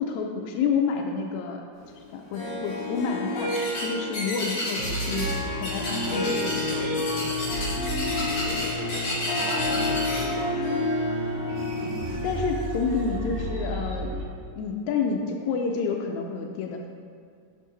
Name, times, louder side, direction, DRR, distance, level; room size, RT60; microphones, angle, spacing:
voice 1, 0.0-1.7 2.1-7.1 12.2-14.2 14.5-16.9, left 5 dB, 80° left, 2 dB, 1.6 m, -29 dB
Harp, 2.3-13.4, left 2 dB, 65° left, 3.0 m, -31 dB
sound 1, 3.5-3.9 4.1-5.4 5.6-10.2, left 1 dB, 45° left, 2.0 m, -31 dB
sound 2, 4.8-14.2, right 1 dB, 70° right, 1.9 m, -33 dB
voice 2, 8.1-10.9, right 2 dB, 90° right, -2 dB, 2.7 m, -42 dB
6.3 x 6.1 x 3.9 m, 2.2 s
omnidirectional pair, 3.8 m